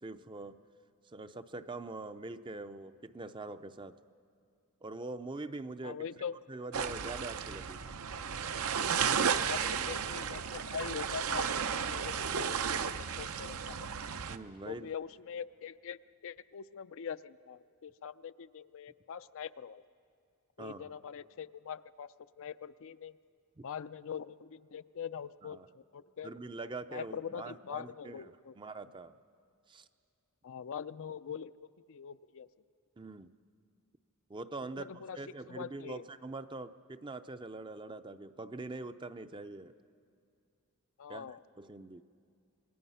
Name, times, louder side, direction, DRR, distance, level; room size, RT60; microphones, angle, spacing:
voice 1, 0.0-0.6 1.1-4.0 4.8-6.1 6.5-8.0 14.3-14.9 20.6-20.9 23.6-23.7 25.4-25.7 26.2-29.2 29.7-29.9 33.0-33.3 34.3-34.9 35.2-39.7 41.1-42.0, right 3 dB, 20° right, 11 dB, 0.5 m, -43 dB
voice 2, 5.8-6.4 9.4-13.9 14.7-19.8 20.6-23.1 23.6-26.3 26.9-28.5 30.4-31.5 31.9-32.5 34.8-35.2 35.5-36.0 41.0-41.4, left 7 dB, 60° left, 13 dB, 0.5 m, -43 dB
sound 1, 6.7-14.4, right 7 dB, 70° right, 0.7 m, -33 dB
27.0 x 20.0 x 5.6 m, 2.4 s
head